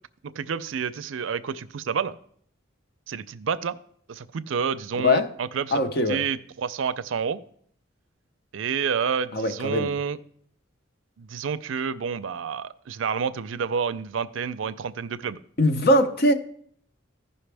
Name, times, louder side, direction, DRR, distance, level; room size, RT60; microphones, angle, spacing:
voice 1, 0.4-2.2 3.1-3.8 4.1-5.8 6.1-7.4 8.5-10.2 11.2-15.4, right 6 dB, 70° right, 0.4 m, -29 dB
voice 2, 5.7-6.2 9.3-9.9 15.6-16.3, left 1 dB, 50° left, 0.8 m, -21 dB
15.5 x 5.6 x 3.4 m
head